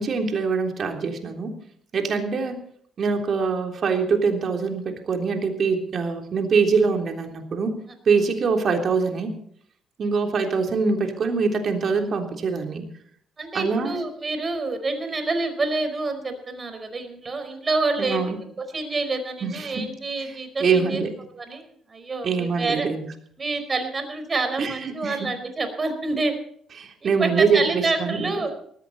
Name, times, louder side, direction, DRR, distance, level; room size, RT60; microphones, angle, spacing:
voice 1, 0.0-1.5 1.9-2.6 3.0-7.8 8.1-9.3 10.0-12.8 13.5-14.0 18.0-18.4 19.4-19.8 20.3-21.1 22.2-23.0 24.6-25.2 26.8-28.3, right 5 dB, 55° right, 3 dB, 3.5 m, -24 dB
voice 2, 13.4-18.3 18.7-21.0 21.3-22.9 23.4-26.3 27.0-28.5, right 3 dB, 35° right, 8 dB, 4.7 m, -27 dB
19.0 x 15.0 x 4.2 m, 0.64 s
hypercardioid pair, 55°, 0 cm